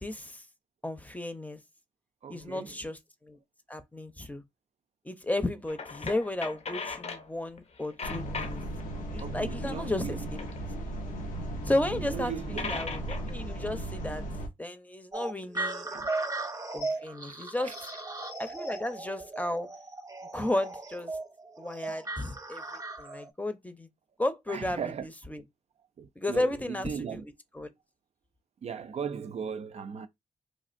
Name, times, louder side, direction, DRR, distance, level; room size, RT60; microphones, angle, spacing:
voice 1, 0.0-0.4 0.8-1.6 2.3-3.4 3.7-4.4 5.0-8.6 9.1-10.4 11.7-14.2 14.6-15.9 16.7-17.7 18.4-19.7 20.3-21.2 21.6-23.9 24.2-24.9 25.3-25.4 26.2-27.2 27.5-27.7, left 1 dB, 10° left, 0.7 m, -33 dB
voice 2, 2.2-2.8 9.2-10.3 11.3-11.6 11.9-12.8 15.9-16.1 17.3-17.7 21.6-22.0 24.5-25.1 26.0-27.2 28.6-30.1, right 7 dB, 50° right, 0.4 m, -38 dB
sound 1, 5.7-7.3 7.6-8.8 9.1-11.0 11.7-11.8 12.1-12.2 12.4-13.3, left 4 dB, 50° left, 0.7 m, -39 dB
sound 2, 8.0-14.5, right 1 dB, 85° left, 0.7 m, -36 dB
sound 3, 15.1-23.3, right 2 dB, 25° right, 0.9 m, -37 dB
3.1 x 2.4 x 2.5 m
supercardioid pair, 55°, 14 cm